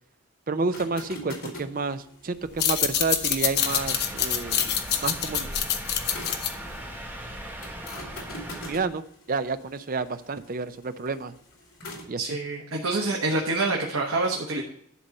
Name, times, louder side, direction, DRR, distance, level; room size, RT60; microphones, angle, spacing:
voice 1, 0.5-4.7 5.0-5.5 8.7-9.0 9.3-11.3 12.1-12.3, right 4 dB, 40° right, 11 dB, 0.5 m, -30 dB
sound 1, 0.7-6.5 7.6-12.1, left 1 dB, 90° left, 2.5 m, -44 dB
sound 2, 2.5-7.6, left 9 dB, 50° left, 0.8 m, -27 dB
sound 3, 3.6-8.7, right 1 dB, 10° right, 1.3 m, -39 dB
voice 2, 12.2-14.6, right 2 dB, 85° right, -1 dB, 1.3 m, -26 dB
11.0 x 4.1 x 6.4 m, 0.72 s
head